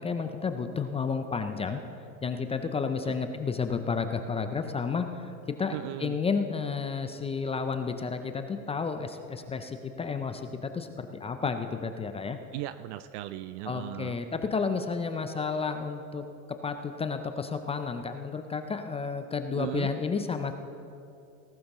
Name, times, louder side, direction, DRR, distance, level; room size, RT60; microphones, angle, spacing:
voice 1, 0.0-1.8 2.2-5.3 5.6-12.4 13.7-16.2 16.6-20.5, left 5 dB, 15° left, 8 dB, 0.5 m, -31 dB
voice 2, 5.7-6.2 12.5-14.2 19.5-19.9, right 16 dB, 55° right, 13 dB, 0.5 m, -37 dB
18.5 x 12.0 x 3.0 m, 2.7 s
hypercardioid pair, 105°, 45 cm